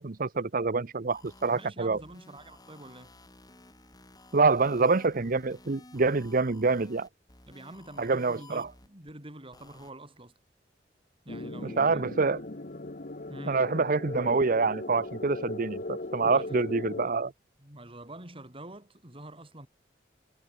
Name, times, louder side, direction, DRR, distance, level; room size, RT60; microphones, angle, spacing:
voice 1, 0.0-2.0 4.3-7.1 8.0-8.7 11.6-12.4 13.5-17.3, right 4 dB, 50° right, 0.8 m, -26 dB
sound 1, 1.1-9.1 9.5-9.9, left 2 dB, 20° left, 5.5 m, -54 dB
voice 2, 1.5-3.2 7.5-10.3 11.2-12.0 13.3-13.7 16.2-16.6 17.6-19.7, right 1 dB, 30° right, 6.5 m, -46 dB
sound 2, 11.3-17.1, left 2 dB, 50° left, 1.3 m, -38 dB
head